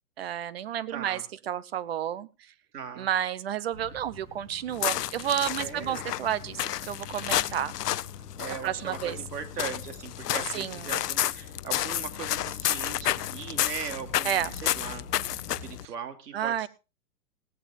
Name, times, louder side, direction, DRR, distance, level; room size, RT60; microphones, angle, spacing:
voice 1, 0.2-2.3 3.0-7.7 8.6-9.2 10.5-11.0 14.2-14.5 16.3-16.7, right 10 dB, 40° right, 18 dB, 0.7 m, -31 dB
voice 2, 0.9-1.2 2.7-3.1 5.4-6.0 8.4-15.1 15.6-16.7, right 7 dB, 80° right, 6 dB, 3.1 m, -39 dB
sound 1, 3.7-15.7, equal, 10° right, 1.9 m, -50 dB
sound 2, 4.7-15.9, left 13 dB, 80° left, 0.8 m, -31 dB
18.5 x 16.5 x 2.5 m, 0.30 s
hypercardioid pair, 165°, 47 cm